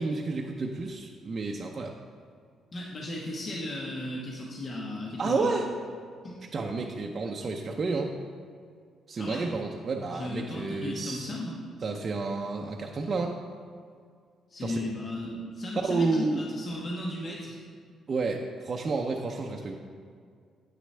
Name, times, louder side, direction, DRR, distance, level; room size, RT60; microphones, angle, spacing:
voice 1, 0.0-1.9 5.2-5.7 6.5-8.1 9.1-11.4 11.8-13.4 14.6-14.8 15.8-16.4 18.1-19.8, right 3 dB, 45° right, 1 dB, 0.6 m, -30 dB
voice 2, 2.7-5.5 6.2-6.4 9.2-9.4 10.1-11.6 14.5-17.6, left 1 dB, 45° left, -3 dB, 1.2 m, -35 dB
8.5 x 6.1 x 3.3 m, 2.1 s
cardioid pair, 80°, 0 cm